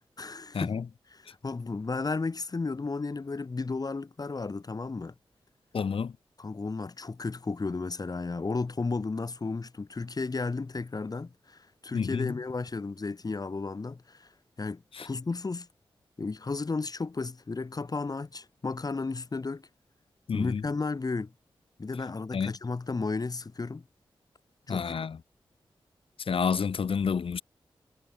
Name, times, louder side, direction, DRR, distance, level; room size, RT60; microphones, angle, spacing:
voice 1, 0.2-0.8 1.1-5.1 6.4-14.3 14.6-15.7 16.2-19.6 20.3-21.3 21.8-23.8 24.7-24.9, left 3 dB, 45° left, 5.7 m, -33 dB
voice 2, 5.7-6.1 11.9-12.4 15.0-15.1 20.3-20.6 22.3-22.5 24.7-25.2 26.3-27.4, left 6 dB, 75° left, 2.4 m, -29 dB
wide cardioid pair, 95°, 9 cm